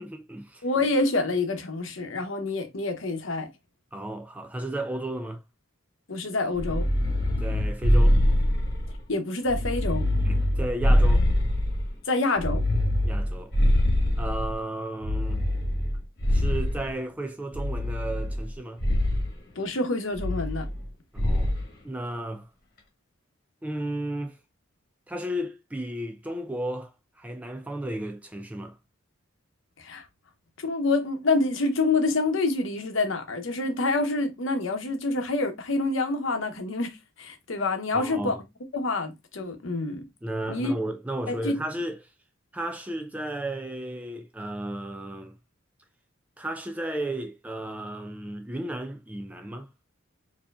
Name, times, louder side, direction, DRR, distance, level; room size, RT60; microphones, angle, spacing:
voice 1, 0.0-0.6 3.9-5.4 7.4-8.2 10.2-11.3 13.0-13.6 14.2-15.4 16.3-18.8 21.1-21.5 21.8-22.5 23.6-24.4 25.1-26.9 27.2-28.8 37.9-38.4 40.2-42.0 42.5-45.3 46.4-49.7, right 1 dB, 5° right, 0.3 m, -34 dB
voice 2, 0.6-3.5 6.1-6.9 9.1-10.1 12.1-12.6 19.6-20.7 29.8-30.0 30.6-38.4 38.7-40.0 40.5-40.7 41.3-41.6, left 3 dB, 70° left, 0.9 m, -27 dB
sound 1, 6.5-9.0 9.5-11.9 12.4-14.5 15.0-16.9 17.5-18.5 18.8-19.3 20.2-20.9 21.2-21.6, left 1 dB, 45° left, 1.3 m, -24 dB
4.6 x 2.8 x 2.3 m
head